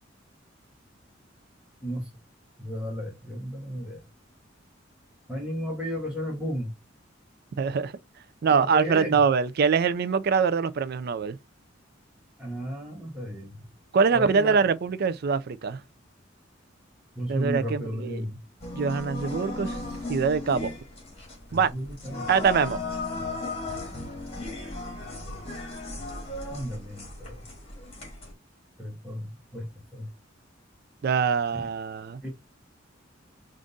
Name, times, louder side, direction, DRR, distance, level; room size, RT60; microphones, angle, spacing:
voice 1, 2.6-4.0 5.3-6.7 8.5-9.2 12.4-13.6 14.1-14.6 17.1-18.4 21.5-22.3 26.5-27.4 28.8-30.1 31.5-31.7 32.2-32.3, equal, 5° right, 1.0 m, -34 dB
voice 2, 7.6-7.9 8.4-11.4 13.9-15.8 17.3-18.2 18.7-19.8 20.1-20.7 21.5-21.7 22.3-22.8 31.0-32.2, right 5 dB, 55° right, 0.4 m, -24 dB
sound 1, 18.6-28.3, left 2 dB, 30° left, 1.9 m, -36 dB
3.6 x 2.5 x 3.8 m
head